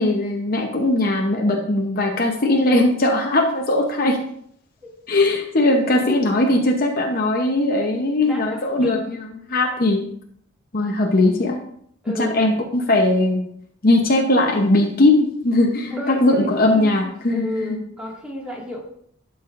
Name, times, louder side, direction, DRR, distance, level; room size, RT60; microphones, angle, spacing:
voice 1, 0.0-4.2 5.1-9.2 9.5-10.0 10.7-11.6 12.2-13.4 13.8-17.5, left 2 dB, 45° left, 2 dB, 0.8 m, -19 dB
voice 2, 8.2-9.0 12.0-12.7 15.9-18.9, left 1 dB, 5° right, -4 dB, 1.9 m, -31 dB
12.0 x 5.6 x 2.5 m, 0.66 s
head